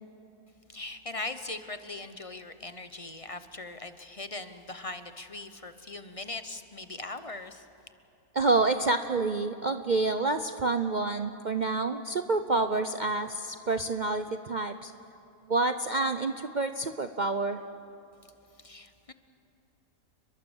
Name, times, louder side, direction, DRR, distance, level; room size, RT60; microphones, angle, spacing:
voice 1, 0.7-7.7 18.6-19.1, left 2 dB, 30° left, 10 dB, 0.9 m, -40 dB
voice 2, 8.3-14.9 15.5-17.6, right 3 dB, 45° right, 8 dB, 0.7 m, -28 dB
30.0 x 22.0 x 7.2 m, 2.8 s
omnidirectional pair, 1.5 m